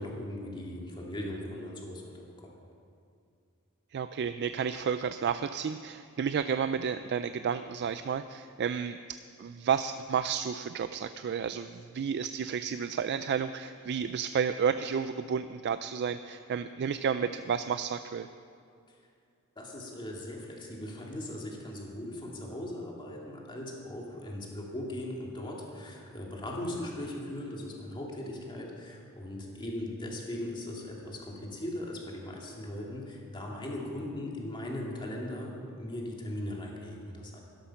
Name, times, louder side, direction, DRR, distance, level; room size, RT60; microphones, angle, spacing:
voice 1, 0.0-2.5 18.9-19.0 19.6-37.4, left 1 dB, 20° left, -2 dB, 2.1 m, -39 dB
voice 2, 3.9-18.3, right 7 dB, 50° right, 11 dB, 0.3 m, -31 dB
13.0 x 11.5 x 5.8 m, 2.4 s
head